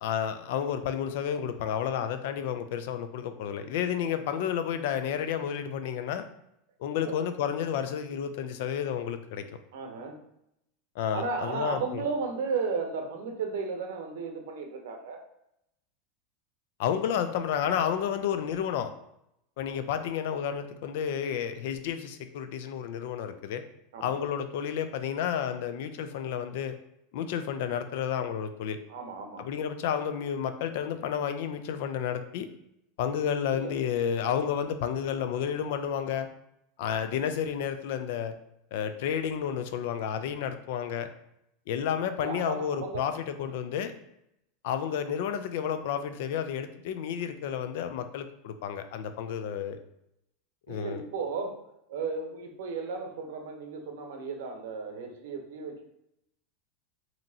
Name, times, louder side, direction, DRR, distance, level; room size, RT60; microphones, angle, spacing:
voice 1, 0.0-6.2 6.8-9.5 11.0-12.0 16.8-18.9 19.6-23.6 24.0-26.8 27.1-28.8 29.4-32.5 33.0-36.3 36.8-38.3 38.7-41.1 41.7-43.9 44.6-49.8 50.7-51.0, left 8 dB, 55° left, 9 dB, 0.4 m, -31 dB
voice 2, 9.7-10.2 11.1-15.2 23.9-24.2 28.9-29.5 33.5-33.7 42.2-43.0 50.7-51.6 51.9-55.9, right 4 dB, 75° right, 3 dB, 0.8 m, -34 dB
5.2 x 2.9 x 2.8 m, 0.80 s
supercardioid pair, 180°, 0 cm